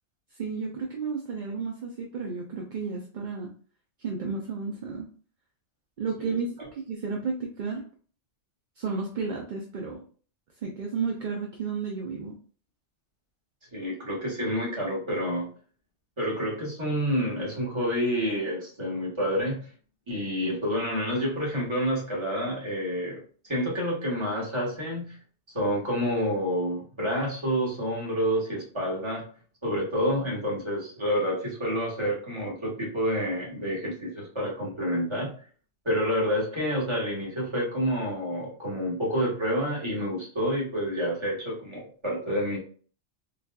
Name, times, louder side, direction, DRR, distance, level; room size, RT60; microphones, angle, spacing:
voice 1, 0.4-3.5 4.0-5.1 6.0-7.9 8.8-10.0 10.6-12.4, right 4 dB, 55° right, 1 dB, 0.6 m, -32 dB
voice 2, 13.7-15.5 16.2-19.7 20.1-25.2 25.5-29.3 29.6-35.4 35.8-42.6, equal, 25° right, -4 dB, 1.2 m, -28 dB
3.9 x 2.3 x 2.2 m, 0.42 s
omnidirectional pair, 1.2 m